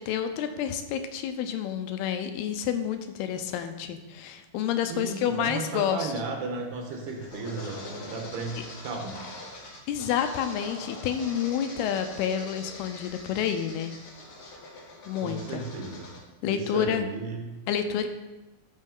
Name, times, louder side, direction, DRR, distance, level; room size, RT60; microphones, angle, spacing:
voice 1, 0.0-6.1 9.9-13.9 15.1-15.6 16.4-17.1 17.7-18.1, left 9 dB, 80° left, 8 dB, 2.4 m, -29 dB
voice 2, 4.9-9.2 15.2-16.1 16.5-17.6, right 3 dB, 75° right, 1 dB, 3.3 m, -35 dB
sound 1, 6.5-16.2, left 2 dB, 65° left, 1.4 m, -43 dB
13.5 x 5.3 x 3.7 m, 1.1 s
omnidirectional pair, 4.7 m